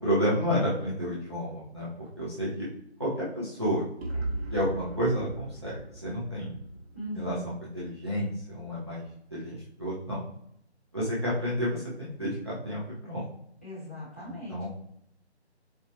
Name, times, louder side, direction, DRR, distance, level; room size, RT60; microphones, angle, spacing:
voice 1, 0.0-1.9 2.2-2.7 3.0-3.8 4.5-6.6 7.1-9.0 9.3-10.2 10.9-13.2 14.2-14.7, equal, 25° right, -8 dB, 0.5 m, -30 dB
sound 1, 4.0-7.9, right 2 dB, 65° right, 0.8 m, -38 dB
voice 2, 6.9-7.3 13.6-14.7, left 1 dB, 10° left, -10 dB, 0.8 m, -39 dB
4.3 x 2.1 x 2.6 m, 0.74 s
figure-of-eight pair, 160°, 34 cm